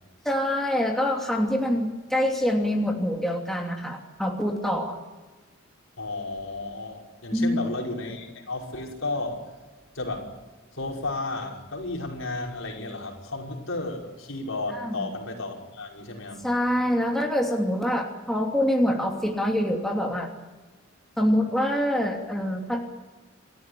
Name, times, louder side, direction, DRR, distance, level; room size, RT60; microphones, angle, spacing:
voice 1, 0.2-5.0 7.3-7.5 14.7-15.1 16.4-20.3 21.2-22.8, equal, ahead, 1 dB, 2.9 m, -25 dB
voice 2, 6.0-9.5 10.0-10.3 10.8-16.4, left 2 dB, 70° left, 0 dB, 5.8 m, -33 dB
28.5 x 14.0 x 10.0 m, 1.3 s
head